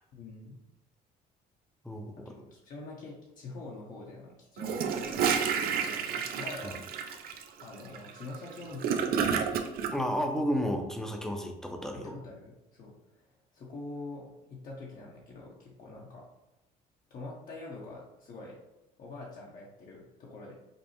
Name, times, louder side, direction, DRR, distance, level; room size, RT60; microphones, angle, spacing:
voice 1, 0.1-0.6 2.2-7.0 7.6-9.6 11.9-16.3 17.1-18.6 19.0-20.5, left 2 dB, 55° left, -4 dB, 0.8 m, -45 dB
Gurgling / Toilet flush, 4.6-9.9, right 7 dB, 60° right, 0.5 m, -30 dB
voice 2, 9.9-12.1, equal, 5° left, 3 dB, 0.5 m, -32 dB
5.2 x 2.0 x 3.0 m, 0.93 s
cardioid pair, 110°, 17 cm